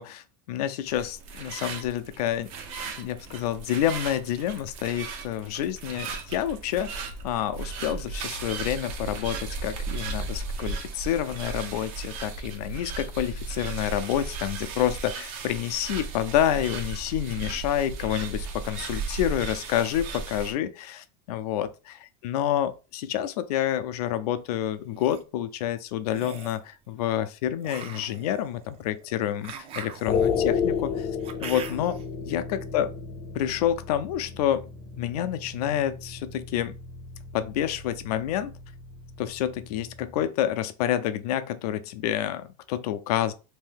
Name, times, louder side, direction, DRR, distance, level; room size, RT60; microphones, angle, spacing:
voice 1, 0.0-2.5 3.0-7.0 7.2-22.0 22.2-31.1 31.4-32.9 33.4-34.7 35.0-36.8 37.3-38.5 39.2-43.3, left 11 dB, 85° left, 0.5 m, -28 dB
sound 1, 0.9-20.5, right 4 dB, 65° right, 0.8 m, -36 dB
sound 2, 24.7-25.2 26.1-26.7 27.6-32.0, right 7 dB, 30° right, 0.4 m, -42 dB
sound 3, 30.1-40.3, left 6 dB, 30° left, 0.4 m, -33 dB
2.7 x 2.6 x 3.5 m
supercardioid pair, 140°, 19 cm